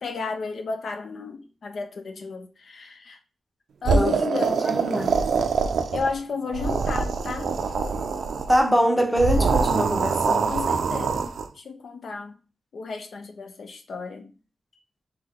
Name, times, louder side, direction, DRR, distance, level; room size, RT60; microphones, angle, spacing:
voice 1, 0.0-3.2 3.8-4.7 5.9-7.6 10.5-12.3 12.7-14.3, left 4 dB, 70° left, 0.5 m, -32 dB
sound 1, 3.8-6.2 6.5-8.6 9.2-11.5, right 5 dB, 85° right, 0.4 m, -24 dB
voice 2, 4.6-5.2 8.5-10.5, equal, 5° left, 0.9 m, -23 dB
3.6 x 2.8 x 3.6 m
wide cardioid pair, 95°, 0 cm